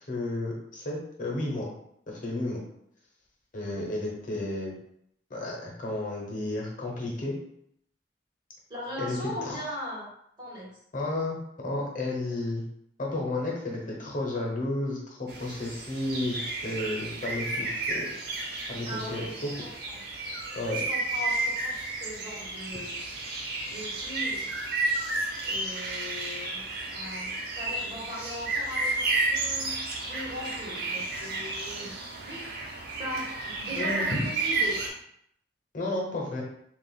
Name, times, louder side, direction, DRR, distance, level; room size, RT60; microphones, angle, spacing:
voice 1, 0.1-1.7 2.1-2.6 3.5-4.7 5.3-7.3 9.0-9.6 10.9-12.6 13.0-17.8 18.7-19.5 20.5-20.8 33.7-34.3 35.7-36.4, left 2 dB, 50° left, -1 dB, 1.0 m, -32 dB
voice 2, 4.2-4.5 8.7-10.1 10.4-10.8 18.9-20.0 20.3-23.4 23.7-24.6 25.4-34.8, equal, 25° right, -6 dB, 1.5 m, -40 dB
sound 1, 15.3-34.9, right 2 dB, 60° right, 0.9 m, -32 dB
7.1 x 2.5 x 2.3 m, 0.72 s
head